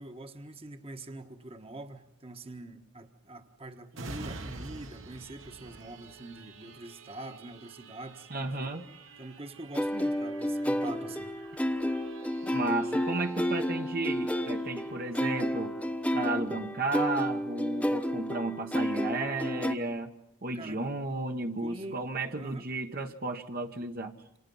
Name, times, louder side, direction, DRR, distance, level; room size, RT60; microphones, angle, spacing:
voice 1, 0.0-8.7 9.2-11.3 20.5-20.8 21.6-22.0 22.3-22.7, right 2 dB, 30° right, 7 dB, 1.5 m, -44 dB
sound 1, 3.9-17.3 17.7-17.8, right 2 dB, 80° right, 2.2 m, -49 dB
voice 2, 8.3-8.8 12.4-15.7 16.1-20.1 20.4-24.1, right 2 dB, 50° right, 4 dB, 1.4 m, -33 dB
sound 2, 9.7-19.7, equal, 5° left, 1.2 m, -31 dB
28.0 x 27.5 x 5.6 m, 0.75 s
head